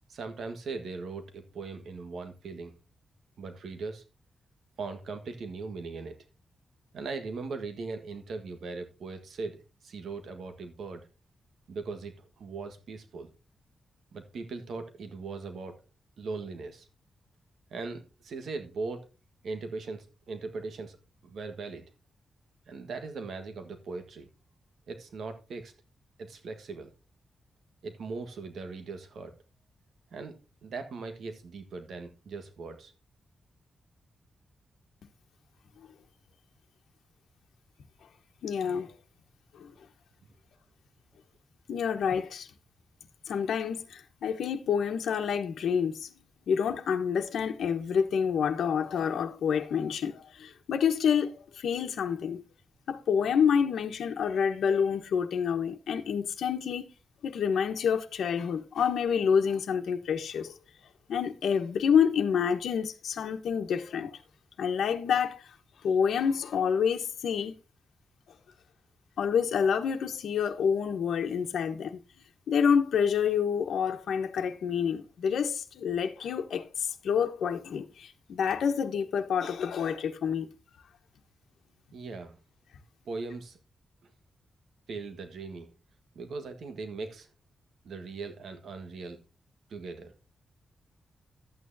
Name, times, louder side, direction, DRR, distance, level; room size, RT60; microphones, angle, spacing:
voice 1, 0.1-2.7 3.4-4.0 4.8-6.2 6.9-11.1 11.7-13.3 14.1-15.8 16.2-16.9 17.7-19.1 19.4-21.0 21.2-21.9 22.7-24.3 24.9-25.7 26.2-26.9 27.8-29.3 30.1-32.9 81.9-82.4 83.0-83.6 84.0-84.1 84.9-85.7 86.1-87.3 87.8-89.2 89.7-90.1, right 4 dB, 70° right, 1.5 m, -39 dB
voice 2, 38.4-38.9 39.5-39.7 41.7-42.5 43.3-46.1 46.5-52.4 52.9-56.9 57.2-60.6 61.1-64.1 64.6-65.5 65.8-67.5 69.2-72.0 72.5-80.5, left 7 dB, 90° left, 1.1 m, -28 dB
12.5 x 8.8 x 2.7 m
wide cardioid pair, 150°, 0 cm